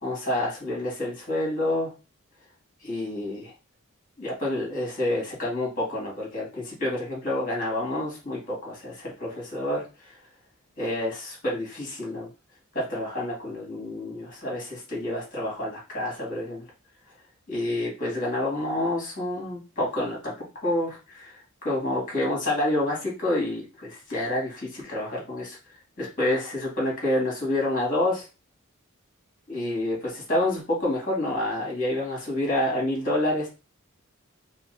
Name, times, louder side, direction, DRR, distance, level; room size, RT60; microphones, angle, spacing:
voice 1, 0.0-1.9 2.8-3.5 4.2-10.2 10.8-12.3 12.7-16.6 17.5-20.3 20.6-25.6 26.0-28.3 29.5-33.5, left 1 dB, 40° left, -3 dB, 2.2 m, -28 dB
5.4 x 2.2 x 2.7 m, 0.30 s
head